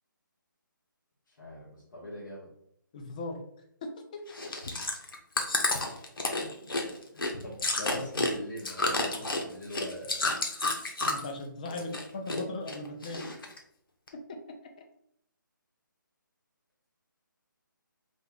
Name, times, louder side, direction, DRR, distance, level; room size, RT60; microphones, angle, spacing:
voice 1, 1.3-2.5 5.7-5.8 6.4-6.7 7.1-10.3 11.7-11.8, left 1 dB, 60° left, -7 dB, 1.5 m, -43 dB
voice 2, 2.9-3.4 11.0-13.3 14.1-14.2, left 2 dB, 20° left, 4 dB, 0.4 m, -38 dB
Chewing mastication, 4.3-11.4 11.7-12.4 12.7-13.6 14.1-14.2, left 2 dB, 85° left, 0.9 m, -30 dB
3.4 x 2.9 x 3.7 m, 0.71 s
hypercardioid pair, 165°, 11 cm